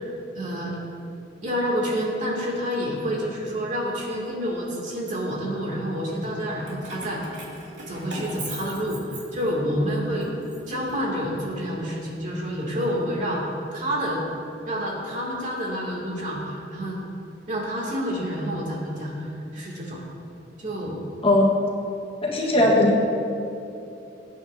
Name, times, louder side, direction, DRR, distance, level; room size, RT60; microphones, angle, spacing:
voice 1, 0.3-0.8 1.4-7.4 7.9-10.3 10.7-13.4 13.7-14.2 14.7-17.0 17.5-20.0 20.6-21.0 22.5-22.7, equal, 45° right, -3 dB, 2.6 m, -28 dB
Keys jangling, 6.6-9.8 10.2-11.5, right 2 dB, 75° right, 2.7 m, -39 dB
voice 2, 21.2-21.6 22.2-23.0, left 1 dB, 30° left, -3 dB, 1.5 m, -18 dB
22.0 x 9.1 x 2.8 m, 2.8 s
head